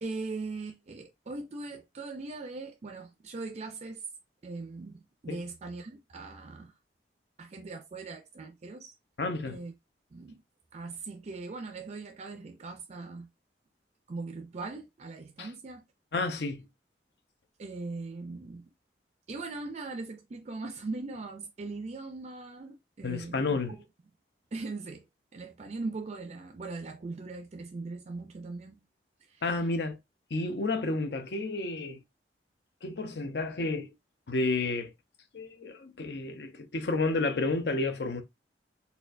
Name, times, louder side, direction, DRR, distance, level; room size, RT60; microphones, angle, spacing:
voice 1, 0.0-4.0 4.4-6.8 7.4-8.9 9.5-9.7 10.1-10.4 10.7-13.3 14.1-15.8 17.6-18.7 19.3-23.8 24.5-25.1 25.3-28.8 29.3-29.4, right 3 dB, 40° right, 0.4 m, -40 dB
voice 2, 9.2-9.6 15.4-15.5 16.1-16.6 23.0-23.8 29.4-30.0 30.3-32.0 32.8-33.9 34.3-34.9 35.3-38.2, left 3 dB, 65° left, 0.6 m, -31 dB
4.2 x 2.3 x 2.5 m
head